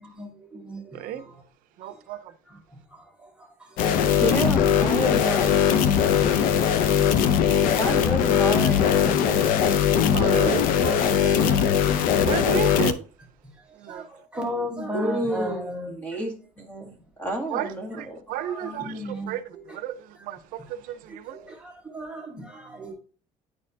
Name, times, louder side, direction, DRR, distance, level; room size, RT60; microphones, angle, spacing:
voice 1, 0.0-1.4 2.5-3.8 7.2-7.4 10.3-10.6 11.5-12.2 13.4-15.9 17.5-17.6 18.4-19.6 21.3-22.9, equal, 5° right, 1.3 m, -36 dB
voice 2, 0.9-1.2 1.8-2.3 7.2-7.7 10.1-11.7 12.3-13.1 13.8-14.0 17.5-21.4, right 12 dB, 70° right, 0.6 m, -33 dB
sound 1, 3.8-12.9, left 8 dB, 70° left, 0.5 m, -20 dB
voice 3, 4.0-5.6 7.7-9.4 12.0-12.5 14.9-18.2, right 1 dB, 10° left, 1.7 m, -30 dB
9.8 x 4.3 x 2.7 m
cardioid pair, 170°, 15 cm